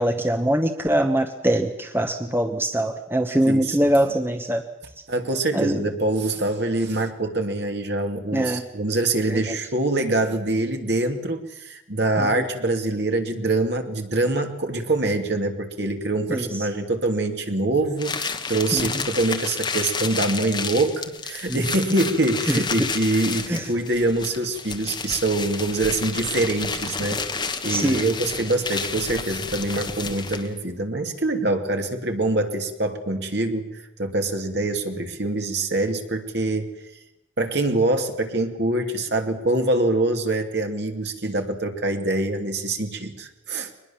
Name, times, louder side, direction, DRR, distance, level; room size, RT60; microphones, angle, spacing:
voice 1, 0.0-4.6 5.5-5.8 8.3-8.6 9.3-9.6 12.2-12.3 16.3-16.5 18.7-18.9 21.5-21.6 22.8-22.9 23.5-23.6 27.7-28.0, right 1 dB, 10° right, 6 dB, 1.1 m, -23 dB
voice 2, 3.4-3.9 5.1-27.3 27.6-33.7 34.0-36.7 37.4-43.7, right 2 dB, 55° right, 5 dB, 2.6 m, -24 dB
sound 1, 18.0-30.6, left 5 dB, 25° left, 1.4 m, -31 dB
23.0 x 21.0 x 7.2 m, 0.95 s
head